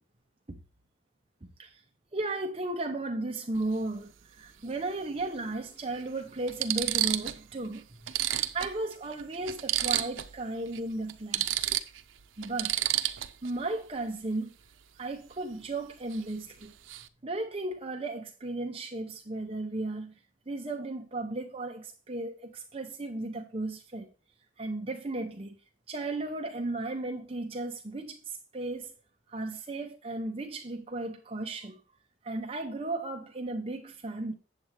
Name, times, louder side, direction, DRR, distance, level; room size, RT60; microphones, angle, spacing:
voice 1, 1.4-1.8 2.1-11.8 12.4-12.7 13.4-14.5 15.0-16.7 17.2-20.1 20.5-24.1 24.6-25.6 25.9-28.9 29.3-31.8 32.2-34.3, right 2 dB, 30° right, 0.7 m, -35 dB
sound 1, 3.5-3.7 5.2-5.3 6.0-6.1 6.5-7.4 7.7-7.8 8.1-10.4 10.7-10.8 11.1-13.5 16.1-16.3 16.6-17.1, right 13 dB, 90° right, 0.6 m, -31 dB
8.6 x 7.5 x 3.3 m
head